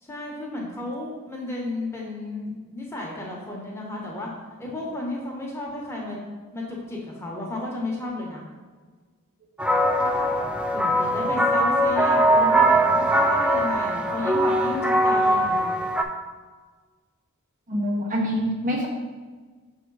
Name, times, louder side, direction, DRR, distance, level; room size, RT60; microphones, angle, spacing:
voice 1, 0.0-4.3 4.6-6.2 6.5-8.4 10.7-15.6, left 2 dB, 10° left, -3 dB, 1.1 m, -33 dB
sound 1, 9.6-16.0, right 1 dB, 5° right, 0.3 m, -21 dB
voice 2, 17.7-18.9, equal, 35° right, -1 dB, 0.8 m, -25 dB
6.4 x 3.6 x 4.7 m, 1.5 s
head